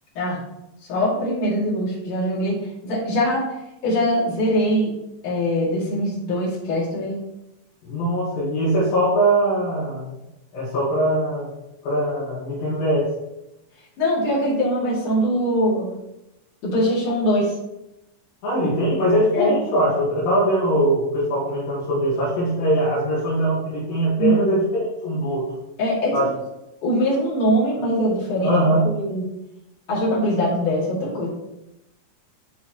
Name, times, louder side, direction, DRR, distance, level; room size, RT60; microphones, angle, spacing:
voice 1, 0.9-2.6 2.8-3.5 3.8-4.9 5.2-7.2 14.0-15.9 16.6-17.5 19.3-19.5 24.2-24.5 25.8-26.1 26.8-28.5 28.8-29.3 29.9-31.3, equal, 65° left, -7 dB, 3.9 m, -22 dB
voice 2, 7.8-10.1 10.5-11.5 11.8-13.1 18.4-25.5 26.1-26.3 28.4-28.9, right 1 dB, 80° left, -7 dB, 3.4 m, -21 dB
11.5 x 4.3 x 3.0 m, 0.91 s
omnidirectional pair, 4.0 m